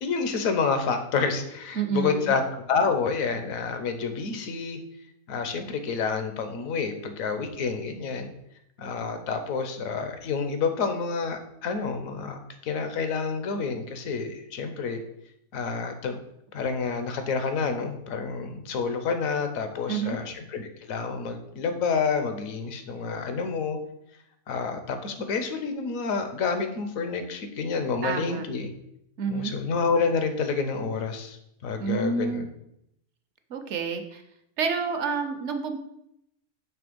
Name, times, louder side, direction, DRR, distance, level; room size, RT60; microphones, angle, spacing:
voice 1, 0.0-2.4 2.7-4.8 5.3-8.3 8.8-15.0 15.5-16.2 16.5-23.8 24.5-28.7 29.3-31.4 31.6-32.5, left 5 dB, 75° left, 7 dB, 1.2 m, -28 dB
voice 2, 1.8-2.3 19.9-20.2 28.0-28.4 29.2-29.5 31.8-32.5 33.5-34.2 34.6-35.8, right 5 dB, 60° right, 7 dB, 0.9 m, -28 dB
6.0 x 3.2 x 5.1 m, 0.78 s
omnidirectional pair, 1.5 m